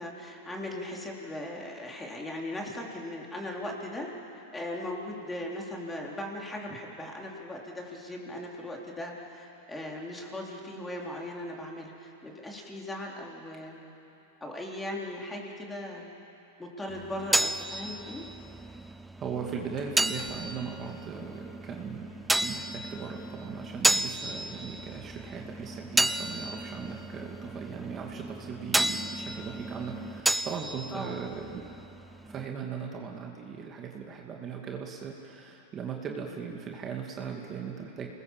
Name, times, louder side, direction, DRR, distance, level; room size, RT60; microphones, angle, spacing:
voice 1, 0.0-4.1 4.3-13.8 14.4-16.0 16.6-18.2 30.9-31.2, left 1 dB, 10° left, -1 dB, 4.0 m, -38 dB
sound 1, 16.9-32.4, right 1 dB, 5° right, 0.5 m, -32 dB
sound 2, 18.8-18.9 19.8-20.9, left 7 dB, 55° left, 2.6 m, -52 dB
voice 2, 19.2-31.7 32.2-38.1, right 6 dB, 30° right, 1 dB, 2.5 m, -38 dB
28.0 x 20.5 x 7.5 m, 2.9 s
hypercardioid pair, 115°, 0 cm